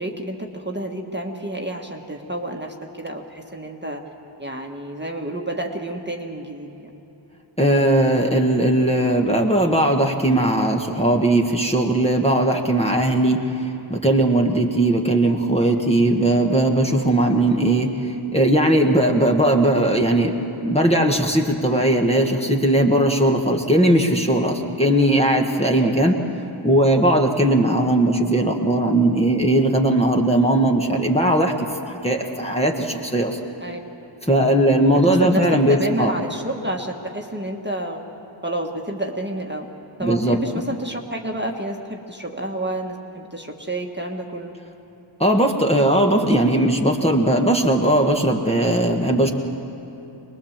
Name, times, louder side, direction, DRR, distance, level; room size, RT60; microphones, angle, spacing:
voice 1, 0.0-4.0 4.4-6.9 25.7-25.9 33.6-33.9 34.5-35.4 35.7-38.0 38.4-39.7 40.0-44.5, right 1 dB, 20° right, 1 dB, 1.6 m, -30 dB
voice 2, 7.6-20.3 20.6-26.2 26.6-33.4 34.3-36.1 40.0-40.4 45.2-49.3, right 1 dB, 10° left, 1 dB, 1.6 m, -19 dB
23.0 x 20.0 x 7.4 m, 3.0 s
wide cardioid pair, 45°, 48 cm